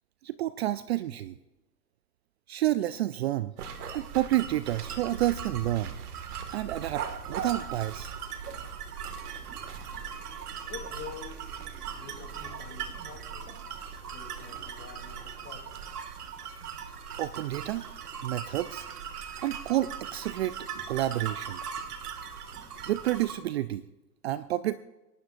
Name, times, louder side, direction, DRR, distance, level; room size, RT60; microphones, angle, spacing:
voice 1, 0.2-1.3 2.5-3.5 3.9-6.0 6.5-8.1 17.2-17.8 18.2-18.9 19.4-20.6 20.9-21.6 22.9-23.8 24.2-24.8, right 14 dB, 40° right, 15 dB, 0.5 m, -29 dB
sound 1, 3.6-23.3, right 7 dB, 65° right, 2.1 m, -39 dB
sound 2, 9.3-13.5, right 8 dB, 20° right, 0.9 m, -54 dB
voice 2, 10.6-11.5 11.9-13.6 14.1-15.8, left 8 dB, 25° left, 3 dB, 3.2 m, -46 dB
29.0 x 16.0 x 2.6 m, 1.1 s
hypercardioid pair, 120°, 49 cm